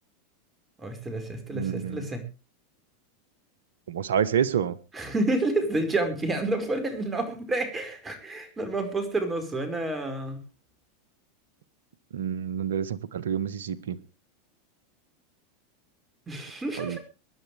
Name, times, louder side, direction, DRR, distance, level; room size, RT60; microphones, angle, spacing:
voice 1, 0.8-2.2 4.9-10.4 16.3-17.0, right 2 dB, 20° right, 7 dB, 5.0 m, -29 dB
voice 2, 1.5-2.0 3.9-4.8 12.1-14.0 16.8-17.0, right 8 dB, 80° right, 15 dB, 1.2 m, -28 dB
24.0 x 10.5 x 3.4 m, 0.31 s
hypercardioid pair, 100°, 0 cm